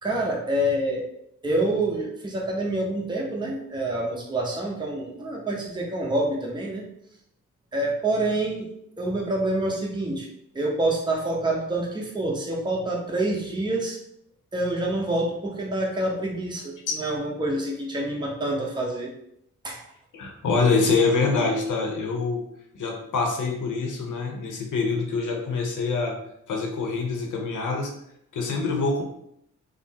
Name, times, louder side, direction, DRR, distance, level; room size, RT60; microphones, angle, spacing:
voice 1, 0.0-1.0 1.4-6.8 7.7-8.7 9.0-10.3 10.5-14.0 14.5-19.1 19.6-19.8, right 1 dB, 15° right, -2 dB, 0.8 m, -27 dB
voice 2, 20.1-22.4 22.7-26.2 26.5-27.9 28.3-29.0, left 4 dB, 60° left, 2 dB, 0.7 m, -25 dB
3.2 x 2.0 x 2.8 m, 0.74 s
hypercardioid pair, 40°, 35 cm